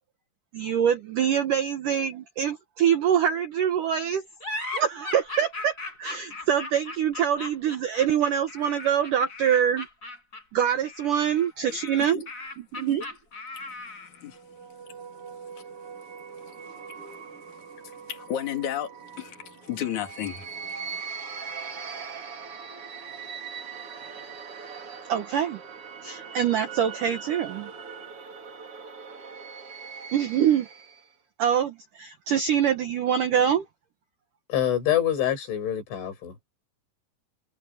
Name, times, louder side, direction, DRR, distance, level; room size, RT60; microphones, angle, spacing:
voice 1, 0.5-4.2 4.7-9.9 10.5-12.3 12.6-13.1 24.1-24.2 25.1-25.6 26.0-27.7 30.1-30.7 31.4-33.7, right 9 dB, 75° right, 1.9 m, -25 dB
sound 1, 4.4-14.2, left 2 dB, 20° left, 6.5 m, -38 dB
sound 2, 14.3-31.1, right 6 dB, 40° right, 2.6 m, -41 dB
voice 2, 18.1-20.6, left 10 dB, 45° left, 3.3 m, -33 dB
voice 3, 34.5-36.3, left 11 dB, 75° left, 7.4 m, -25 dB
omnidirectional pair, 5.4 m